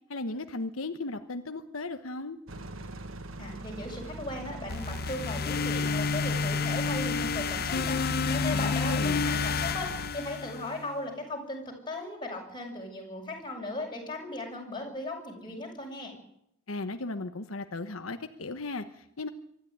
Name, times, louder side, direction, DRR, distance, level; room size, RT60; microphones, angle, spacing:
voice 1, 0.1-2.4 8.5-9.2 16.7-19.3, left 2 dB, 85° left, 7 dB, 1.2 m, -36 dB
sound 1, 2.5-10.1, right 2 dB, 75° right, 1.5 m, -42 dB
voice 2, 3.4-16.1, left 1 dB, 25° left, 0 dB, 7.3 m, -37 dB
sound 2, 4.7-10.9, left 5 dB, 50° left, 0.7 m, -29 dB
24.5 x 12.5 x 9.5 m, 0.76 s
head